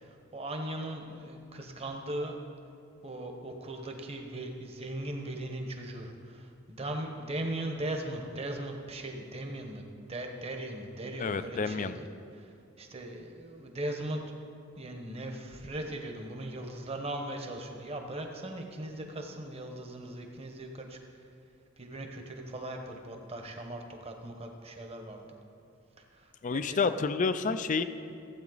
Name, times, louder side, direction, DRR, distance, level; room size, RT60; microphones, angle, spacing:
voice 1, 0.0-2.4 3.0-12.0 12.4-14.2 14.8-21.0 21.8-25.3 26.1-26.8, right 1 dB, 30° right, 3 dB, 1.1 m, -39 dB
voice 2, 11.2-12.0 26.4-27.8, left 4 dB, 35° left, 11 dB, 0.4 m, -29 dB
15.5 x 8.3 x 4.0 m, 2.5 s
head